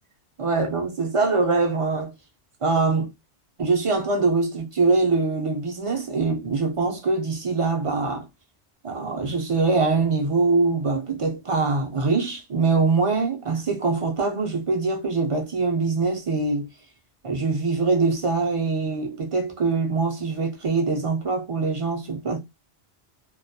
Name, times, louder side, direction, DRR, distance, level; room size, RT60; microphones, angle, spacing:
voice 1, 0.4-2.1 2.6-3.1 3.6-8.3 8.8-16.7 17.2-22.4, right 3 dB, 50° right, 0.4 m, -23 dB
2.2 x 2.2 x 2.6 m
omnidirectional pair, 1.1 m